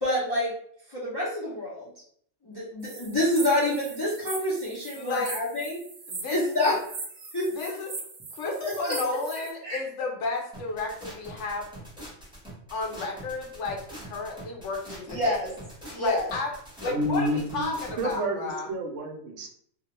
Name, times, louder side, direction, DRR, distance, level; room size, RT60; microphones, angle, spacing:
voice 1, 0.0-0.5 0.9-1.9 2.4-5.8 6.3-6.8 7.2-7.8 8.8-9.0 9.6-9.8 15.1-15.5 15.9-16.3, left 1 dB, 35° left, -7 dB, 0.4 m, -27 dB
sound 1, 2.8-9.5, right 3 dB, 90° right, 0.3 m, -40 dB
voice 2, 4.9-5.3 6.1-6.4 7.5-7.9 8.3-11.7 12.7-15.4 16.0-16.5 16.8-18.7, left 3 dB, 70° left, 1 dB, 0.9 m, -32 dB
sound 2, 10.5-18.2, right 1 dB, 5° right, 0.7 m, -44 dB
voice 3, 16.9-19.5, equal, 70° right, 2 dB, 0.9 m, -30 dB
2.3 x 2.0 x 2.9 m, 0.63 s
omnidirectional pair, 1.4 m